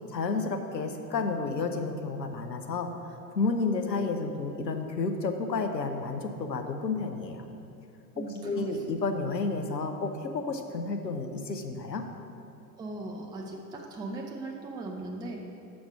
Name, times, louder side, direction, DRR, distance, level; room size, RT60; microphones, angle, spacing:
voice 1, 0.1-7.5 8.2-12.0, left 3 dB, 85° left, 5 dB, 0.8 m, -31 dB
voice 2, 8.1-8.8 12.8-15.4, right 2 dB, 10° right, 0 dB, 0.5 m, -38 dB
6.2 x 6.1 x 6.0 m, 2.7 s
figure-of-eight pair, 85°, 49 cm